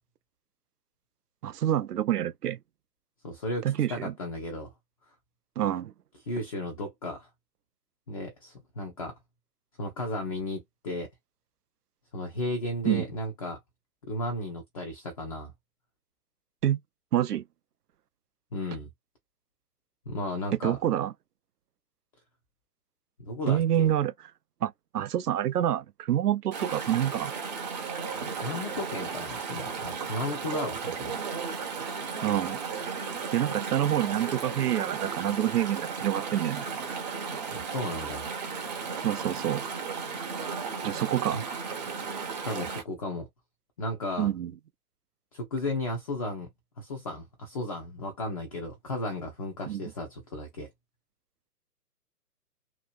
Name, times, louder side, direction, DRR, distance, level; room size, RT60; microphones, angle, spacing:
voice 1, 1.4-2.6 3.6-4.1 5.6-5.9 12.8-13.1 16.6-16.8 17.1-17.4 20.6-21.1 23.5-24.1 24.6-27.3 32.2-32.6 33.3-36.7 39.0-39.6 40.8-41.4 44.2-44.5 49.7-49.8, right 11 dB, 70° right, 0.5 m, -27 dB
voice 2, 3.2-4.7 6.2-7.3 8.1-9.2 9.8-11.1 12.1-13.6 14.0-15.5 18.5-18.9 20.1-20.8 23.2-23.9 28.1-31.1 37.5-38.3 41.3-41.4 42.3-43.3 43.8-44.3 45.3-46.5 46.8-50.7, left 1 dB, 25° left, 0.6 m, -34 dB
Chatter / Stream, 26.5-42.8, right 5 dB, 25° right, 0.7 m, -35 dB
2.9 x 2.4 x 2.4 m
figure-of-eight pair, 130°, 49 cm